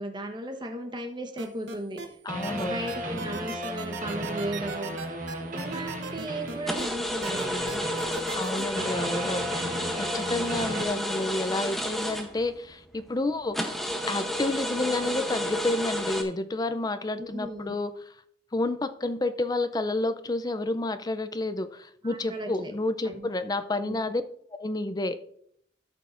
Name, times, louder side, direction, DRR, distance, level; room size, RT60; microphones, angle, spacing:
voice 1, 0.0-2.2 2.5-5.1 5.5-7.8 10.7-11.1 17.2-17.7 22.0-22.7 23.0-23.3 23.8-24.0, right 1 dB, 25° right, 4 dB, 1.0 m, -36 dB
sound 1, 1.4-2.1 2.4-6.8 7.2-8.6, right 5 dB, 70° right, 1.0 m, -38 dB
voice 2, 2.2-2.8 8.4-9.4 10.0-13.5 14.1-17.9 18.5-24.2 24.5-25.2, left 2 dB, 20° left, 11 dB, 0.4 m, -30 dB
sound 2, 2.3-7.0 7.2-10.8, right 1 dB, 45° right, 1.1 m, -35 dB
sound 3, 6.7-12.7 13.1-13.2 13.5-16.2, left 1 dB, ahead, 0.8 m, -31 dB
13.0 x 5.6 x 2.5 m, 0.66 s
head